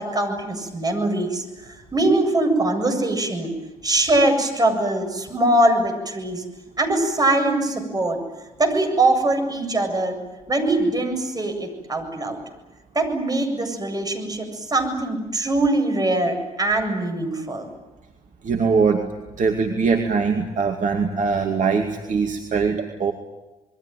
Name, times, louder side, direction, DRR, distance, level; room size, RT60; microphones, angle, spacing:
voice 1, 0.0-3.5 3.8-6.4 6.8-8.2 8.6-10.2 10.5-12.4 12.9-17.7, right 2 dB, 20° right, 4 dB, 7.9 m, -22 dB
voice 2, 18.4-19.1 19.3-23.1, right 5 dB, 40° right, 3 dB, 2.4 m, -22 dB
27.5 x 22.0 x 9.3 m, 1.1 s
figure-of-eight pair, 50°, 19 cm